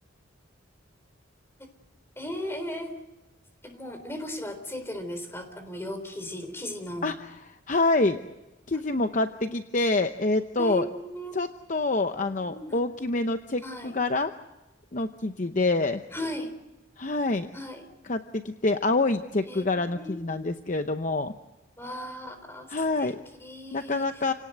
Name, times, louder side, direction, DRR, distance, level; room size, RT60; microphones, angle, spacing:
voice 1, 2.2-2.9 3.6-7.1 10.6-11.4 12.2-12.8 13.6-14.0 16.1-16.5 17.5-17.9 19.5-20.4 21.8-22.7 23.0-23.1 23.4-24.1, left 1 dB, 10° left, 8 dB, 3.7 m, -37 dB
voice 2, 7.7-8.2 8.7-10.9 11.3-14.3 14.9-16.0 17.0-17.5 18.0-21.3 22.7-23.2 23.7-24.3, left 2 dB, 40° left, 8 dB, 0.8 m, -26 dB
28.5 x 18.0 x 7.9 m, 1.0 s
head